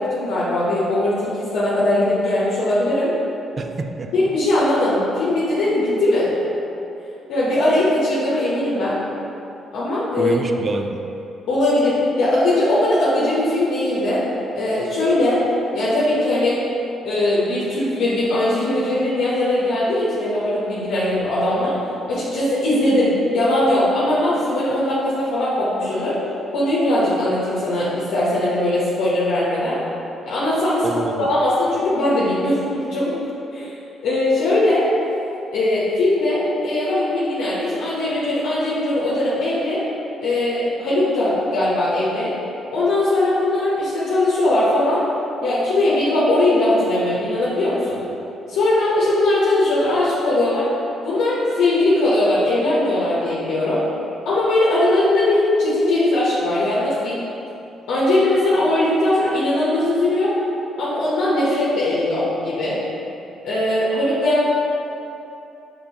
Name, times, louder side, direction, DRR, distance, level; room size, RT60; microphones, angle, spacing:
voice 1, 0.0-3.1 4.1-6.3 7.3-9.0 9.7-10.3 11.5-14.2 14.5-15.4 15.7-16.6 17.0-21.7 22.1-26.2 26.5-29.8 30.2-30.8 31.2-33.2 33.5-33.7 34.0-34.9 35.5-39.8 40.2-42.3 42.7-45.0 45.4-48.0 48.5-50.7 51.0-53.8 54.2-57.2 57.9-60.4 60.8-62.8 63.4-64.5, left 1 dB, 85° left, -9 dB, 0.9 m, -20 dB
voice 2, 3.6-4.1 10.2-11.0 30.8-31.3, right 3 dB, 40° right, 5 dB, 0.3 m, -26 dB
5.3 x 3.5 x 2.8 m, 2.9 s
cardioid pair, 90°, 0 cm